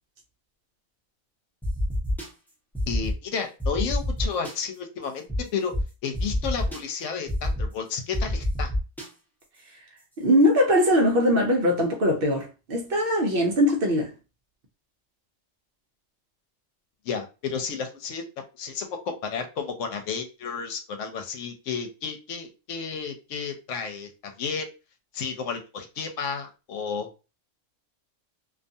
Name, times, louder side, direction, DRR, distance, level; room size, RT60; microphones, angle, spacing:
sound 1, 1.6-2.3 2.7-3.1 3.6-4.5 5.3-5.4 5.7-5.8 6.1-6.8 7.3-7.7 8.1-9.0, left 1 dB, ahead, 0.7 m, -26 dB
voice 1, 2.9-5.7 6.0-8.7 17.1-18.2 18.6-24.7 25.1-27.1, left 6 dB, 90° left, 1.0 m, -32 dB
voice 2, 10.2-14.1, equal, 60° right, 0.7 m, -21 dB
2.4 x 2.3 x 2.6 m
omnidirectional pair, 1.3 m